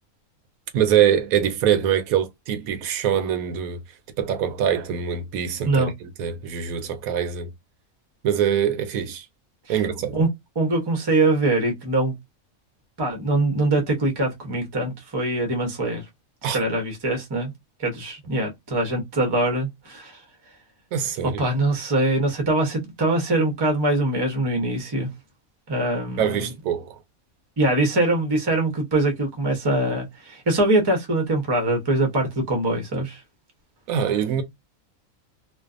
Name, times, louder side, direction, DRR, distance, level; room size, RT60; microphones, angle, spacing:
voice 1, 0.7-3.8 4.2-7.5 8.2-9.2 9.7-10.2 16.4-16.6 20.9-21.4 26.2-27.0 33.9-34.4, right 9 dB, 80° right, 1.0 m, -23 dB
voice 2, 10.6-12.1 13.0-16.0 16.5-17.5 17.8-20.2 21.2-25.1 25.7-26.5 27.6-33.2, right 2 dB, 25° right, 0.6 m, -23 dB
2.5 x 2.3 x 2.3 m
omnidirectional pair, 1.5 m